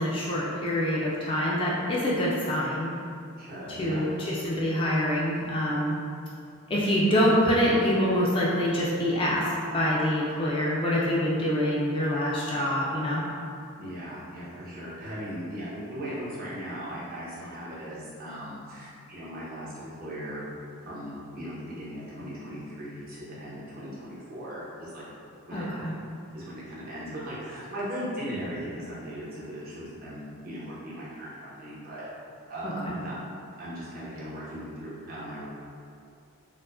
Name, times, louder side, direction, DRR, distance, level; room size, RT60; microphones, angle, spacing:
voice 1, 0.0-2.9 3.7-5.9 6.7-9.5 9.7-13.2 25.5-25.9 32.9-33.0, equal, 25° left, -6 dB, 0.3 m, -25 dB
voice 2, 3.4-4.1 13.8-20.4 20.8-25.0 25.5-25.7 26.3-32.1 32.5-33.1 33.6-35.4, equal, 40° right, -8 dB, 0.8 m, -38 dB
4.5 x 2.1 x 2.4 m, 2.5 s
head